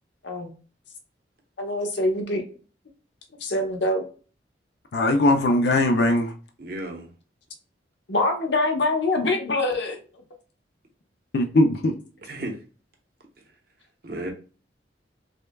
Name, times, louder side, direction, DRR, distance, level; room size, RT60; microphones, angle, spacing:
voice 1, 1.6-2.4 3.4-4.1 8.1-10.0, left 2 dB, 75° left, 0.9 m, -24 dB
voice 2, 4.9-6.3 11.3-12.0, left 1 dB, 60° left, 0.4 m, -20 dB
voice 3, 6.6-7.1 12.2-12.6 14.0-14.3, right 1 dB, 55° right, 0.9 m, -33 dB
6.3 x 2.2 x 2.2 m
head